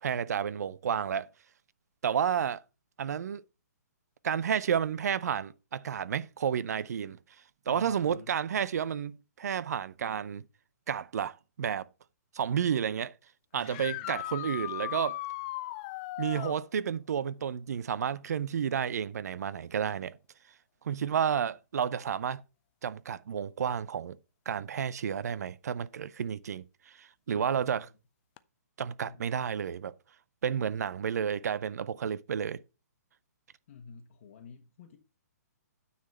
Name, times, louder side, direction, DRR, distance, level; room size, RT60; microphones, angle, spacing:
voice 1, 0.0-1.3 2.0-2.6 3.0-3.4 4.2-7.2 7.7-10.4 10.9-11.9 12.3-13.1 13.5-15.2 16.2-20.2 20.8-22.4 22.8-24.2 24.5-27.9 28.8-29.9 30.4-32.6, right 8 dB, 65° right, 0.5 m, -31 dB
voice 2, 7.7-8.4 13.5-14.2 27.3-27.9 29.0-29.3 33.7-35.0, left 5 dB, 50° left, 1.3 m, -50 dB
sound 1, 13.6-16.6 19.9-20.0 22.0-22.1 28.4-28.5, left 16 dB, 30° left, 0.5 m, -37 dB
9.4 x 4.1 x 5.4 m
hypercardioid pair, 145°, 9 cm